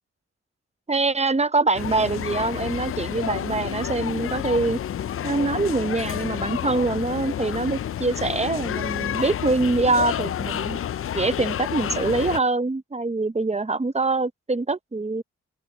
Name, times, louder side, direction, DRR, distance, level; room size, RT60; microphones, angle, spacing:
voice 1, 0.9-4.8 5.2-10.8 11.1-15.2, right 3 dB, 20° right, 0.9 m, -24 dB
sound 1, 1.7-12.4, left 10 dB, 50° left, 0.4 m, -29 dB
open air
cardioid pair, 50°, 29 cm